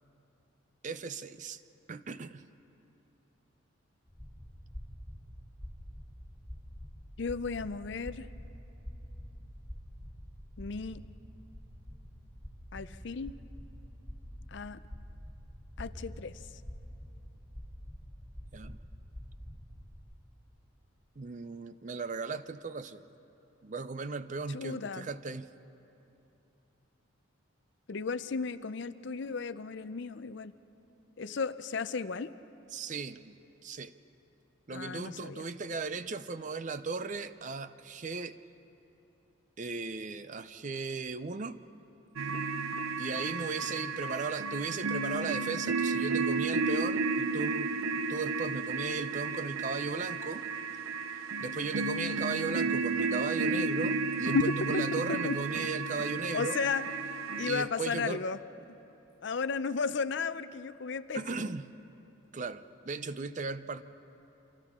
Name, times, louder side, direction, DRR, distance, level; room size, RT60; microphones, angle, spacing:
voice 1, 0.8-1.6 1.9-2.4 18.5-18.8 21.2-23.0 23.6-25.5 32.7-33.9 34.7-38.4 39.6-41.6 43.0-50.5 51.4-56.6 57.4-58.2 61.1-61.7 62.3-63.8, right 4 dB, 35° right, 12 dB, 0.5 m, -37 dB
sound 1, 4.1-20.0, equal, 10° right, 2.4 m, -47 dB
voice 2, 7.2-8.3 10.6-11.0 12.7-13.3 14.5-14.8 15.8-16.4 24.5-25.1 27.9-30.5 31.2-32.3 34.7-35.4 54.3-54.4 54.7-54.8 55.1-55.4 56.3-56.9 57.4-58.4 58.7-58.8 59.2-61.5, left 5 dB, 55° left, 14 dB, 0.5 m, -34 dB
sound 2, 42.2-57.5, right 4 dB, 80° right, 0.8 m, -32 dB
29.0 x 26.0 x 3.7 m, 2.9 s
head